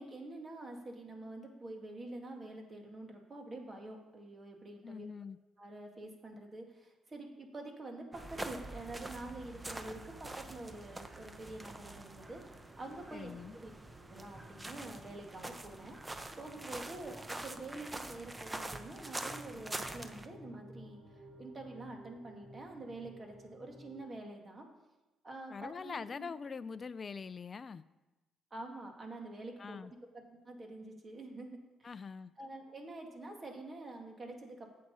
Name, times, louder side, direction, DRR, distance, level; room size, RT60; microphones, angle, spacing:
voice 1, 0.0-5.1 5.6-13.7 14.1-24.7 25.2-26.3 28.5-31.9 32.4-34.7, right 2 dB, 35° right, 2 dB, 2.2 m, -47 dB
voice 2, 4.8-5.4 13.1-13.5 25.5-27.8 29.6-29.9 31.8-32.3, left 5 dB, 40° left, 14 dB, 0.4 m, -43 dB
sound 1, 8.1-20.3, right 2 dB, 20° right, 0.8 m, -45 dB
sound 2, 11.0-24.0, equal, 55° right, 3.7 m, -57 dB
8.7 x 7.6 x 5.5 m, 1.1 s
supercardioid pair, 60°, 0 cm